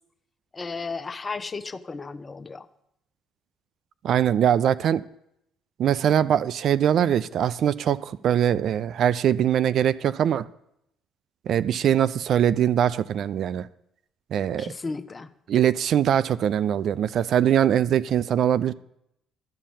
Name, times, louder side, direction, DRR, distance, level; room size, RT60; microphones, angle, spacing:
voice 1, 0.5-2.7 14.6-15.3, left 4 dB, 30° left, 12 dB, 0.7 m, -34 dB
voice 2, 4.0-5.0 5.8-10.5 11.5-13.7 14.3-14.7 15.5-18.7, right 9 dB, 60° right, 16 dB, 0.3 m, -22 dB
12.0 x 5.7 x 7.0 m, 0.79 s
hypercardioid pair, 55°, 0 cm